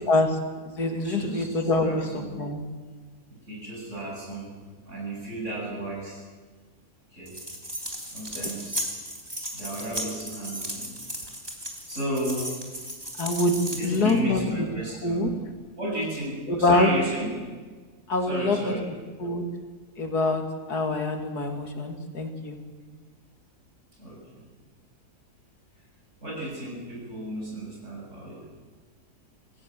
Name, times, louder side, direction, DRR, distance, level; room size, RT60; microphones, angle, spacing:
voice 1, 0.1-0.4 0.8-2.1 2.4-2.6 13.2-13.5 13.8-14.7 15.0-15.3 16.5-16.9 18.1-18.7 19.2-19.4 20.0-20.4 20.7-22.6, left 2 dB, 90° left, 4 dB, 2.8 m, -24 dB
voice 2, 1.0-1.5 1.8-2.3 3.5-4.5 4.8-6.2 7.1-7.4 8.1-8.9 9.5-10.9 11.9-12.5 13.7-15.2 15.8-17.3 18.2-18.9 24.0-24.4 26.2-28.4, right 1 dB, 50° right, -3 dB, 8.0 m, -33 dB
sound 1, 7.2-14.2, right 1 dB, 15° right, 3.4 m, -35 dB
26.5 x 15.0 x 7.6 m, 1.4 s
omnidirectional pair, 1.6 m